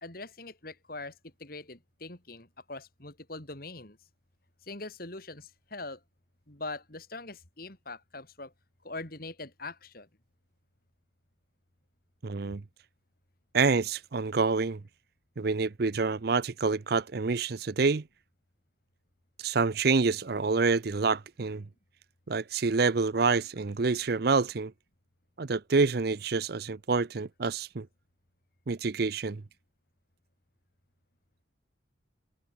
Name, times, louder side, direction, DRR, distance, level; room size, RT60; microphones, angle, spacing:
voice 1, 0.0-4.0 4.6-6.0 6.5-8.5 8.8-10.1, left 2 dB, 50° left, 3.0 m, -42 dB
voice 2, 12.2-12.6 13.5-14.8 15.4-18.0 19.4-21.7 22.3-24.7 25.4-27.9 28.7-29.4, right 4 dB, 50° right, 0.6 m, -27 dB
head